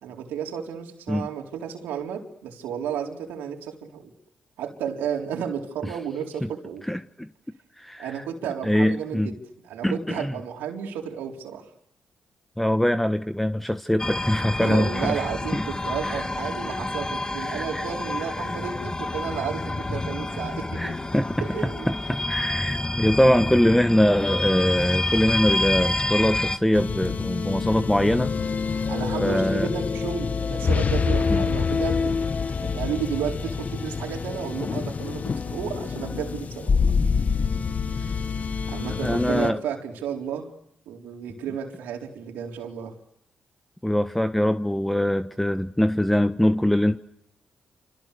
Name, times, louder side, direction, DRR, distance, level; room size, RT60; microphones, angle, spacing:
voice 1, 0.0-4.1 4.6-6.8 8.0-9.3 9.6-11.7 14.6-21.0 21.4-21.9 28.9-32.3 32.6-36.8 37.9-38.3 38.7-40.5 40.9-43.0, right 8 dB, 85° right, 4.1 m, -32 dB
voice 2, 6.9-7.3 7.8-8.1 8.6-9.3 9.8-10.3 12.6-15.2 15.5-15.6 16.0-16.3 17.4-17.8 20.8-21.3 21.9-28.3 29.2-29.7 31.3-31.4 39.0-39.6 43.8-47.0, left 1 dB, 5° left, 1.3 m, -23 dB
sound 1, 14.0-26.6, left 2 dB, 25° left, 2.1 m, -28 dB
sound 2, 26.7-39.5, left 5 dB, 50° left, 1.3 m, -26 dB
29.0 x 27.5 x 7.0 m
supercardioid pair, 50°, 3 cm